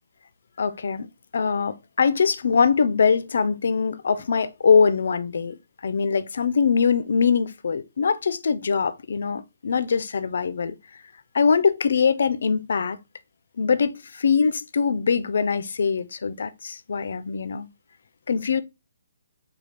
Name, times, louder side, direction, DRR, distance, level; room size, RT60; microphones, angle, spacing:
voice 1, 0.6-1.1 1.3-10.8 11.3-13.0 13.6-17.7 18.3-18.6, left 5 dB, 65° left, 0.4 m, -22 dB
5.0 x 2.3 x 3.0 m
hypercardioid pair, 150°, 0 cm